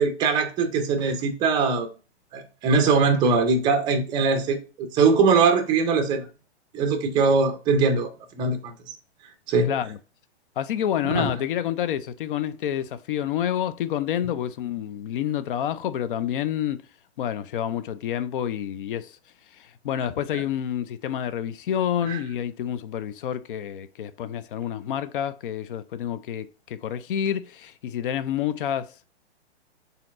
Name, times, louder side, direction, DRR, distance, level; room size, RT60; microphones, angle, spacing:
voice 1, 0.0-1.9 2.3-6.3 6.7-8.7 9.5-9.7 11.0-11.3 22.1-22.2, right 4 dB, 15° right, 0.5 m, -22 dB
voice 2, 9.7-10.0 10.6-16.9 17.2-19.2 19.6-29.0, left 10 dB, 50° left, 0.4 m, -28 dB
4.2 x 3.9 x 2.4 m
hypercardioid pair, 135°, 34 cm